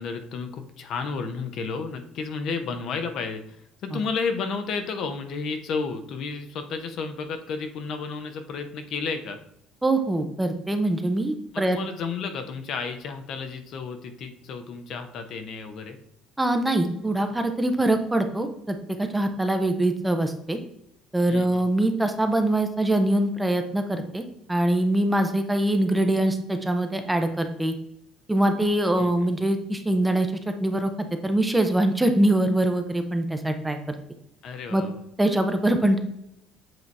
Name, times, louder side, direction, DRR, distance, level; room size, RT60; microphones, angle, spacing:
voice 1, 0.0-9.4 11.5-16.0 21.3-21.7 29.0-29.3 34.4-35.0, left 5 dB, 55° left, 7 dB, 0.7 m, -32 dB
voice 2, 9.8-11.8 16.4-20.6 21.1-27.7 28.3-33.8 34.7-34.8 35.2-36.0, right 1 dB, 5° right, 6 dB, 0.6 m, -23 dB
7.7 x 2.8 x 4.6 m, 0.78 s
cardioid pair, 145°, 0 cm